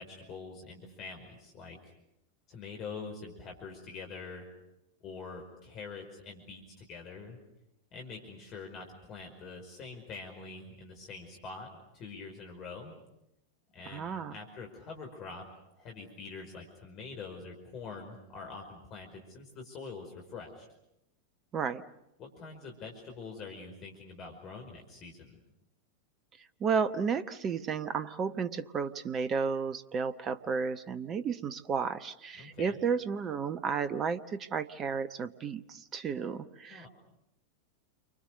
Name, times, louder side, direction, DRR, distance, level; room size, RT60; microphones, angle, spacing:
voice 1, 0.0-1.9 2.5-4.5 5.0-7.4 7.9-12.9 13.7-15.5 15.7-20.7 22.2-25.4 32.4-32.8 36.7-36.9, left 4 dB, 35° left, 2 dB, 5.4 m, -45 dB
voice 2, 13.9-14.3 21.5-21.8 26.6-36.9, right 6 dB, 25° right, 12 dB, 1.0 m, -32 dB
29.5 x 25.0 x 6.6 m, 0.86 s
figure-of-eight pair, 90°, 0 cm